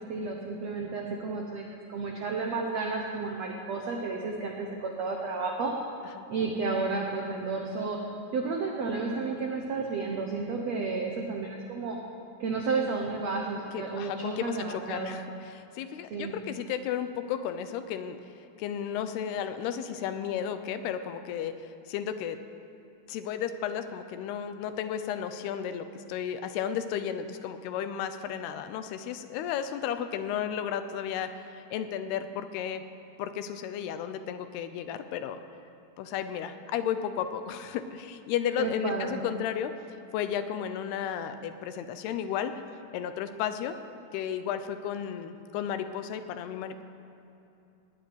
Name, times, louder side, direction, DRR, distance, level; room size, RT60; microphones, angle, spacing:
voice 1, 0.0-5.7 6.3-8.0 8.3-12.0 12.4-15.2 16.1-16.4 38.6-39.2, right 4 dB, 90° right, 1 dB, 1.4 m, -32 dB
voice 2, 13.7-18.2 18.6-22.4 23.1-32.8 33.2-35.4 36.0-39.8 40.1-42.5 42.9-43.8 44.1-46.8, left 9 dB, 80° left, 10 dB, 2.6 m, -33 dB
20.0 x 7.5 x 9.3 m, 2.8 s
omnidirectional pair, 4.8 m